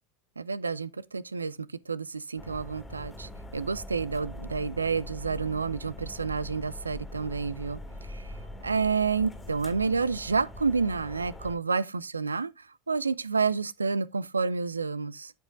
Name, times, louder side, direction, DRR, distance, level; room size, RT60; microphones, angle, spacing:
voice 1, 0.4-8.4 8.6-15.3, right 4 dB, 80° right, 0.3 m, -29 dB
sound 1, 2.4-11.6, left 1 dB, 15° left, 1.9 m, -42 dB
12.5 x 5.0 x 2.5 m
figure-of-eight pair, 75°, 0 cm